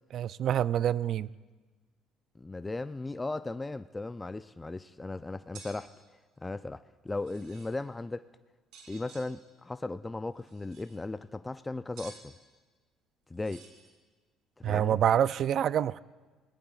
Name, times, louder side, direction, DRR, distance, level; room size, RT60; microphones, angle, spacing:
voice 1, 0.1-1.3 14.6-16.0, right 10 dB, 60° right, 0.3 m, -26 dB
voice 2, 2.4-5.9 6.4-8.3 8.9-12.3 13.3-13.6 14.6-15.0, left 2 dB, 15° left, 0.4 m, -37 dB
sound 1, 5.5-5.8 7.1-7.8 8.7-9.3 10.4-11.0 12.0-12.2 13.4-13.9, right 5 dB, 75° right, 2.9 m, -52 dB
22.5 x 17.5 x 2.4 m
supercardioid pair, 75°, 0 cm